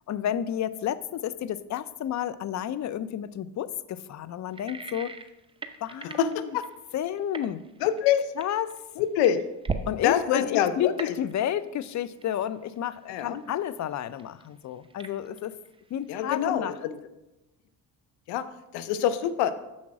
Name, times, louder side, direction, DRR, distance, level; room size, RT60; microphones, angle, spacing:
voice 1, 0.1-5.1 5.8-6.5 6.9-7.6 8.4-8.7 9.9-15.5 15.9-16.8, left 10 dB, 45° left, 15 dB, 0.5 m, -31 dB
sound 1, 4.5-10.0 10.3-10.7 11.0-11.7 12.0-13.9 14.2-16.0 16.3-16.7, right 4 dB, 15° right, 0.7 m, -38 dB
voice 2, 6.2-6.6 7.8-8.3 9.0-9.4 10.0-11.1 13.1-13.4 16.1-17.0 18.3-18.5 18.7-19.5, left 10 dB, 85° left, 12 dB, 0.7 m, -25 dB
7.2 x 6.1 x 4.8 m, 0.97 s
supercardioid pair, 75°, 40 cm